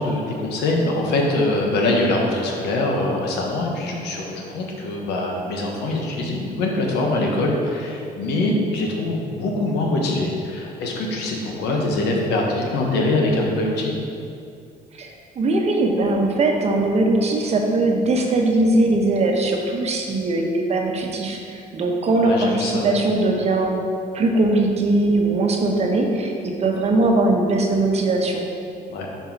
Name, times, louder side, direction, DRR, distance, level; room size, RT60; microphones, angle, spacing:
voice 1, 0.0-13.9 22.2-22.9 28.9-29.1, left 2 dB, 80° left, 0 dB, 1.1 m, -23 dB
voice 2, 15.0-23.8 24.1-28.4, right 2 dB, 40° right, 1 dB, 0.9 m, -20 dB
5.4 x 4.5 x 4.5 m, 2.5 s
cardioid pair, 110°, 17 cm